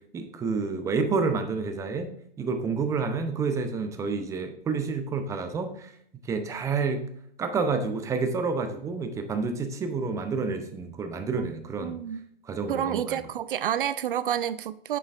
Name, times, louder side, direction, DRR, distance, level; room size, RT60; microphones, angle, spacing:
voice 1, 0.1-2.1 2.4-5.9 6.3-7.0 7.4-12.0 12.4-13.2, right 4 dB, 10° right, 0.6 m, -29 dB
voice 2, 11.4-12.2 12.7-15.0, right 10 dB, 60° right, 0.4 m, -29 dB
8.2 x 6.9 x 2.4 m
hypercardioid pair, 120°, 30 cm